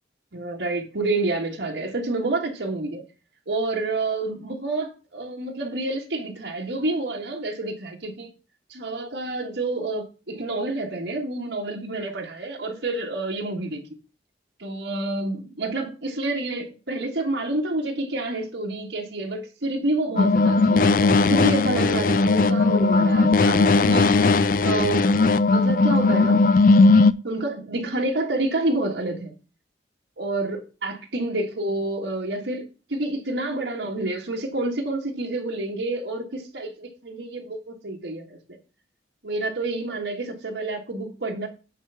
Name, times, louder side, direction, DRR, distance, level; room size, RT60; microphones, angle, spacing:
voice 1, 0.3-3.0 3.5-8.3 8.7-13.9 14.6-21.0 21.3-24.1 24.6-25.1 25.5-26.4 27.2-29.3 30.2-32.6 32.9-38.6 39.2-41.5, right 2 dB, 80° right, 1.6 m, -28 dB
sound 1, 20.2-27.1, left 3 dB, 50° left, 0.4 m, -18 dB
9.2 x 4.7 x 5.6 m
head